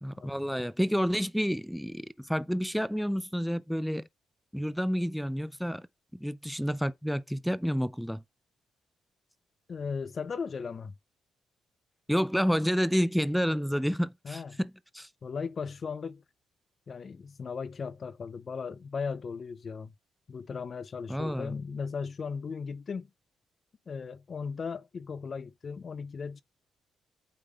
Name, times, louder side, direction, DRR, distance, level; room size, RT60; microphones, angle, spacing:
voice 1, 0.0-4.1 4.5-5.9 6.1-8.2 12.1-15.1 21.1-21.5, equal, ahead, 0.4 m, -29 dB
voice 2, 9.7-10.9 14.2-14.6 15.2-16.2 16.9-19.9 20.3-23.1 23.9-26.4, left 5 dB, 45° left, 0.6 m, -37 dB
8.7 x 3.7 x 3.4 m
cardioid pair, 85°, 0 cm